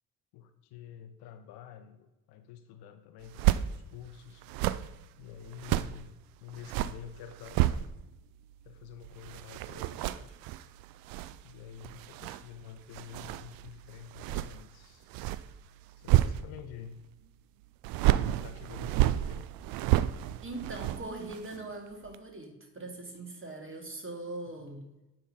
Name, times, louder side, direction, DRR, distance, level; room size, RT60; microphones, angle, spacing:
voice 1, 0.3-4.4 5.2-7.8 8.6-10.4 11.4-15.1 16.0-16.9 18.2-19.5 24.6-24.7, left 9 dB, 55° left, 9 dB, 0.7 m, -48 dB
sound 1, 3.2-3.7 4.4-6.0 6.5-8.2 8.5-16.9 17.8-21.7 22.0-22.2, right 14 dB, 50° right, 0.5 m, -31 dB
voice 2, 20.4-24.8, right 2 dB, 25° right, 2 dB, 2.2 m, -41 dB
9.4 x 3.8 x 5.5 m, 0.97 s
figure-of-eight pair, 45°, 46 cm